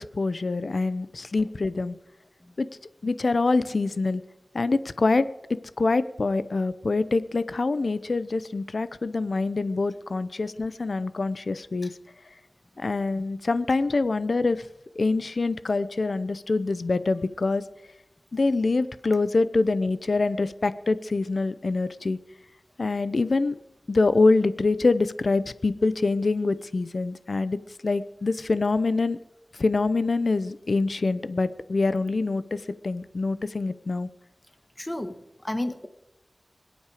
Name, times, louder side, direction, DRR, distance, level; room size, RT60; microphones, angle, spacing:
voice 1, 0.1-2.0 2.6-2.7 3.0-4.2 4.5-5.3 5.8-11.9 12.8-14.6 15.0-17.6 18.3-22.2 22.8-23.5 23.9-27.6 27.8-29.2 29.6-34.1, left 3 dB, 75° left, 15 dB, 0.8 m, -25 dB
voice 2, 34.8-35.9, left 1 dB, 25° left, 9 dB, 1.5 m, -33 dB
26.0 x 8.7 x 5.0 m, 0.89 s
wide cardioid pair, 50°, 0 cm